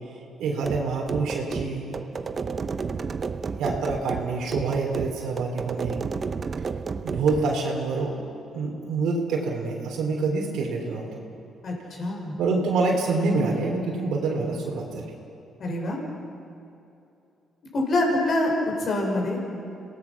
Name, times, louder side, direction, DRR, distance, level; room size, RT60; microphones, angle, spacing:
voice 1, 0.4-1.9 3.6-6.0 7.0-8.1 8.5-11.2 12.4-15.1, right 3 dB, 80° right, -1 dB, 3.6 m, -26 dB
sound 1, 0.6-7.5, right 5 dB, 40° right, 0.9 m, -32 dB
voice 2, 11.6-12.4 15.6-16.0 17.7-18.5 18.8-19.4, left 1 dB, 55° left, 0 dB, 6.3 m, -25 dB
26.5 x 18.5 x 6.1 m, 2.7 s
cardioid pair, 90°, 0 cm